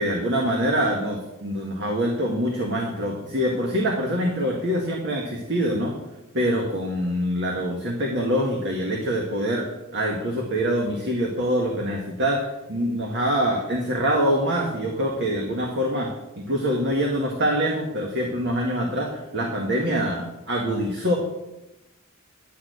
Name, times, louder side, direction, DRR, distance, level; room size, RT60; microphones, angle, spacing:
voice 1, 0.0-5.9 6.3-12.4 12.7-16.1 16.5-21.2, equal, 55° right, 0 dB, 1.8 m, -25 dB
11.0 x 6.5 x 8.2 m, 0.96 s
head